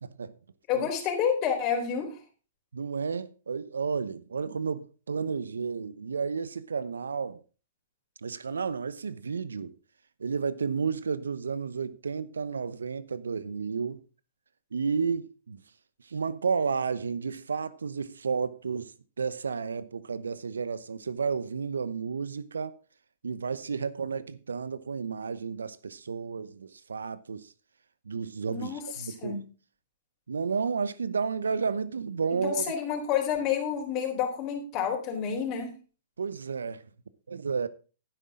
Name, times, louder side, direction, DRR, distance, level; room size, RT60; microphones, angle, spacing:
voice 1, 0.0-0.4 0.7-0.9 2.7-7.4 8.2-9.7 10.2-14.0 14.7-15.6 16.1-22.8 23.2-27.5 28.0-29.4 30.3-32.7 36.2-36.8 37.3-37.7, right 5 dB, 80° right, 0.8 m, -32 dB
voice 2, 0.7-2.2 28.5-29.4 32.4-35.7, left 8 dB, 40° left, 4.0 m, -29 dB
11.5 x 10.0 x 3.7 m
hypercardioid pair, 115°, 0 cm